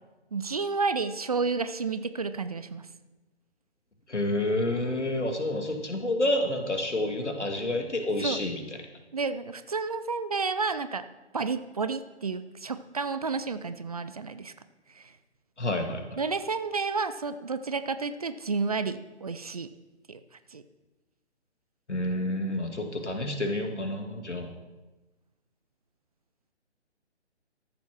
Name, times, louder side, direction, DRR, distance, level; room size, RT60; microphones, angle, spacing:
voice 1, 0.3-2.9 8.2-8.4 9.1-11.0 11.3-14.5 15.0-15.1 16.2-19.7 20.1-20.2 20.5-20.6, right 4 dB, 35° right, 12 dB, 0.5 m, -31 dB
voice 2, 4.1-8.6 15.6-16.2 21.9-24.5, left 1 dB, 80° left, 4 dB, 2.3 m, -29 dB
13.5 x 7.1 x 6.0 m, 1.1 s
figure-of-eight pair, 140°, 34 cm